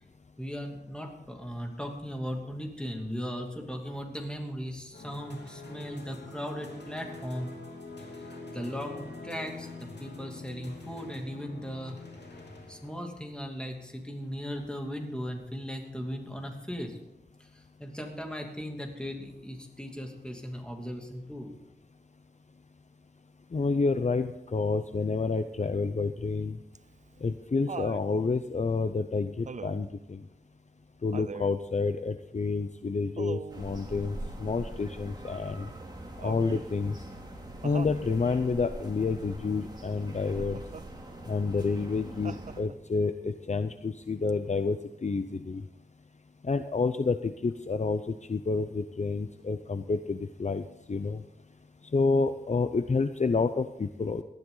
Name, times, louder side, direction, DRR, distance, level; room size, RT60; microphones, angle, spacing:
voice 1, 0.4-7.5 8.5-12.0 12.7-17.0 17.4-21.5, equal, 5° left, 2 dB, 2.7 m, -37 dB
sound 1, 4.9-13.2, left 3 dB, 80° left, 2.9 m, -45 dB
voice 2, 23.5-26.6 27.2-30.2 31.0-35.7 36.2-36.9 37.6-40.6 41.3-45.6 46.4-48.0 48.3-50.6 50.9-51.2 51.9-54.2, left 4 dB, 40° left, 10 dB, 0.6 m, -29 dB
Laughter, 26.7-28.1 29.5-29.9 31.1-31.6 33.2-33.7 36.2-36.7 37.6-38.0 40.4-40.9 42.2-42.9 44.3-44.4, right 5 dB, 45° right, 0.4 m, -41 dB
sound 2, 33.5-42.6, right 1 dB, 25° right, 2.9 m, -43 dB
18.5 x 12.5 x 3.9 m, 0.86 s
wide cardioid pair, 85°, 17 cm